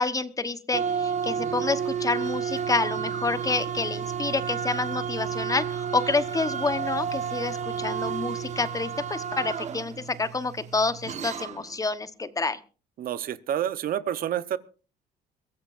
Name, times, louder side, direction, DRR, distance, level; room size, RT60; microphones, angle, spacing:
voice 1, 0.0-12.6, left 3 dB, 20° left, 13 dB, 1.0 m, -28 dB
sound 1, 0.7-11.7, right 7 dB, 45° right, 1.2 m, -31 dB
voice 2, 13.0-14.6, right 10 dB, 60° right, 15 dB, 0.9 m, -28 dB
23.0 x 15.5 x 2.5 m, 0.36 s
cardioid pair, 110°, 17 cm